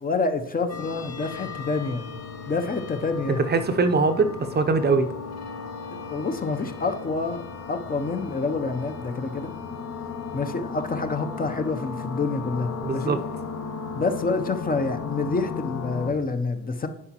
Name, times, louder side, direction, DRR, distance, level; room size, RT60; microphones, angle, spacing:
voice 1, 0.0-2.0 2.5-3.4 6.1-7.4 7.7-9.5 10.3-13.2 13.9-16.9, left 3 dB, 30° left, 0.6 m, -27 dB
sound 1, 0.7-16.1, left 5 dB, 60° left, 0.9 m, -36 dB
voice 2, 3.5-5.1 12.8-13.2, right 4 dB, 35° right, 0.6 m, -22 dB
9.7 x 4.5 x 2.9 m
cardioid pair, 90°, 30 cm